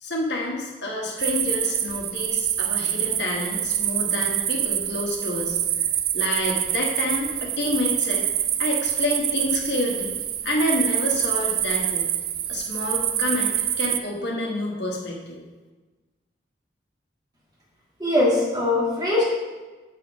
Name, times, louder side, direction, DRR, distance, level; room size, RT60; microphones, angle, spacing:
voice 1, 0.0-5.6 6.1-8.3 8.6-10.1 10.4-12.1 12.5-15.4, left 2 dB, 75° left, -1 dB, 1.3 m, -28 dB
sound 1, 1.2-14.0, right 11 dB, 55° right, 0.4 m, -26 dB
voice 2, 18.0-19.2, left 2 dB, 25° right, -6 dB, 2.0 m, -21 dB
7.8 x 4.1 x 5.1 m, 1.2 s
head